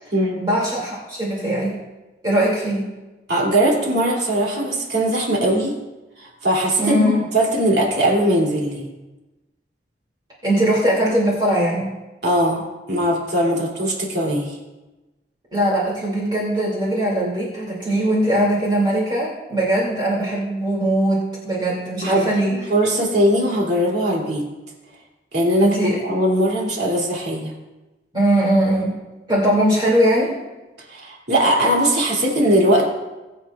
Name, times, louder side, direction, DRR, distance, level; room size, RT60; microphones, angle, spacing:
voice 1, 0.0-1.8 2.2-2.9 6.8-7.2 10.4-11.9 15.5-22.6 25.6-26.0 28.1-28.9 29.3-30.3, right 1 dB, 25° right, -5 dB, 2.4 m, -20 dB
voice 2, 3.3-5.8 6.2-8.8 12.2-12.6 12.9-14.6 22.0-24.5 25.3-27.5 30.9-32.9, right 1 dB, 70° right, -3 dB, 2.7 m, -20 dB
20.5 x 8.4 x 2.4 m, 1.1 s
head